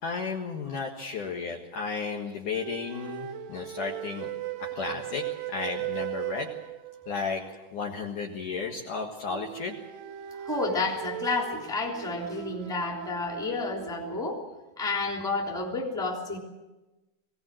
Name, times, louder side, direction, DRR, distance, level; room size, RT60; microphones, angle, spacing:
voice 1, 0.0-4.3 4.6-6.5 7.1-7.4 7.7-9.8, left 5 dB, 55° left, 0 dB, 2.6 m, -33 dB
sound 1, 2.5-7.3 9.3-14.3, right 13 dB, 80° right, 3.2 m, -38 dB
voice 2, 10.4-14.4 14.8-16.4, left 3 dB, ahead, -1 dB, 2.5 m, -30 dB
21.5 x 18.0 x 7.7 m, 1.1 s
omnidirectional pair, 5.0 m